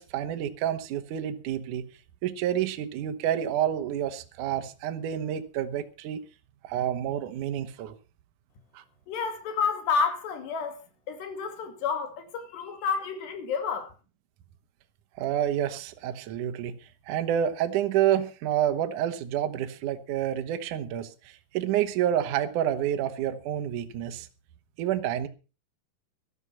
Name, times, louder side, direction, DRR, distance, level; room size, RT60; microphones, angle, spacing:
voice 1, 0.0-1.9 2.2-6.2 6.6-8.0 8.7-8.8 15.2-16.8 17.1-24.3 24.8-25.3, right 10 dB, 60° right, 2.4 m, -29 dB
voice 2, 9.1-10.8 11.1-13.9, left 5 dB, 85° left, 4.6 m, -30 dB
13.5 x 12.5 x 5.5 m
omnidirectional pair, 4.7 m